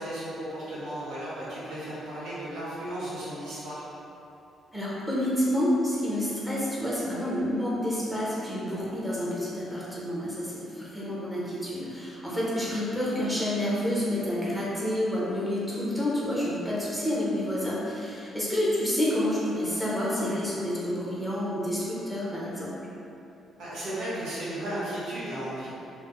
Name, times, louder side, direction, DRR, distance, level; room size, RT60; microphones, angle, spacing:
voice 1, 0.0-3.8 23.6-25.7, right 1 dB, 80° right, -9 dB, 1.0 m, -35 dB
voice 2, 4.7-22.7, left 1 dB, 5° right, -8 dB, 0.8 m, -29 dB
2.6 x 2.0 x 3.6 m, 2.8 s
cardioid pair, 90°, 0 cm